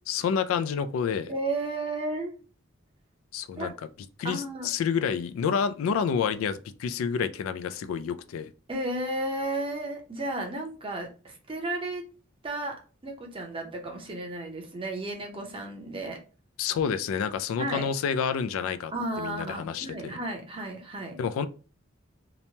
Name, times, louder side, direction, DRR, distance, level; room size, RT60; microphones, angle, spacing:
voice 1, 0.1-1.3 3.3-3.7 4.2-8.5 16.6-20.1 21.2-21.5, left 7 dB, 90° left, 0.3 m, -29 dB
voice 2, 1.3-2.3 3.6-3.7 4.2-4.7 8.7-12.0 12.4-12.7 13.0-16.2 17.6-17.9 18.9-21.2, right 2 dB, 25° right, 0.6 m, -33 dB
2.9 x 2.1 x 2.7 m
head